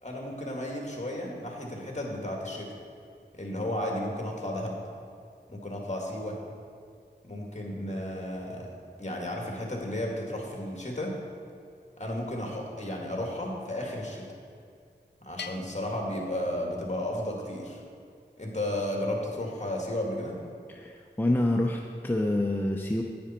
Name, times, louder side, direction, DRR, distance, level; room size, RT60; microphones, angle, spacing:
voice 1, 0.0-2.7 3.3-4.8 5.5-6.4 7.3-8.7 9.0-11.1 12.0-14.3 15.2-17.8 18.4-20.4, left 1 dB, 40° left, -1 dB, 2.2 m, -33 dB
Bell, 15.4-17.1, left 6 dB, 75° left, 0.5 m, -45 dB
voice 2, 20.7-23.0, left 1 dB, 10° left, 1 dB, 0.6 m, -27 dB
10.0 x 9.0 x 4.4 m, 2.3 s
wide cardioid pair, 50°, 18 cm